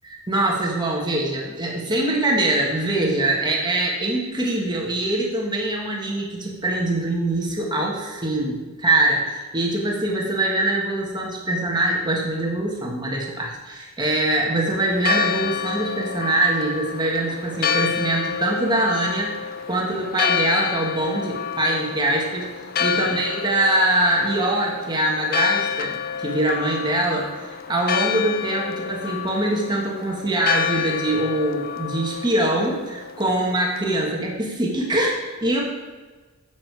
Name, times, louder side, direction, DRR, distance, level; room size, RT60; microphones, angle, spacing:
voice 1, 0.0-22.5 22.8-35.6, right 1 dB, 20° right, -2 dB, 1.7 m, -23 dB
Church bell, 14.7-34.1, left 8 dB, 45° left, 0.5 m, -29 dB
11.5 x 7.4 x 4.8 m, 1.3 s
head